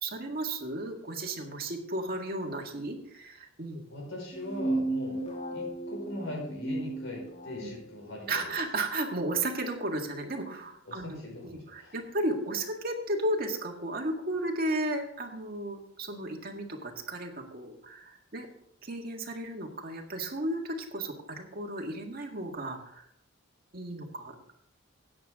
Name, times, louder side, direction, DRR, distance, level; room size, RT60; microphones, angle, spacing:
voice 1, 0.0-3.8 7.6-7.7 8.3-18.5 18.8-23.0 23.7-24.3, right 1 dB, 50° right, 1 dB, 1.9 m, -34 dB
voice 2, 3.9-5.2 5.5-8.5 10.8-12.0, left 1 dB, 70° left, -1 dB, 5.0 m, -40 dB
sound 1, 4.3-7.8, right 2 dB, 40° left, 2.4 m, -34 dB
13.0 x 9.3 x 3.7 m, 0.73 s
head